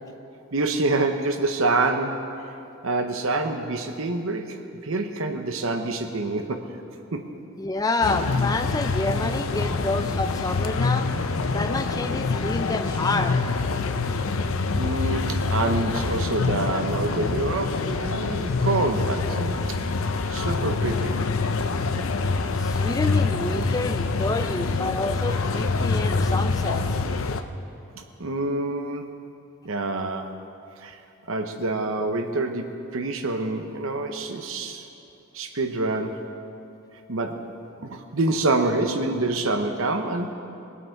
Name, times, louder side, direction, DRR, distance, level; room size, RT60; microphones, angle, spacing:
voice 1, 0.5-2.2 2.8-6.6 7.1-7.3 14.6-19.6 20.3-21.2 28.2-29.1 29.6-30.3 30.8-31.0 31.3-34.8 35.3-36.3 37.1-37.4 37.8-40.3, right 2 dB, 70° right, 6 dB, 0.9 m, -26 dB
voice 2, 7.6-11.1 11.5-13.4 22.6-26.8, left 2 dB, 15° left, 7 dB, 0.4 m, -28 dB
sound 1, 8.0-27.4, left 3 dB, 75° left, 0.7 m, -25 dB
22.5 x 8.4 x 4.6 m, 2.6 s
head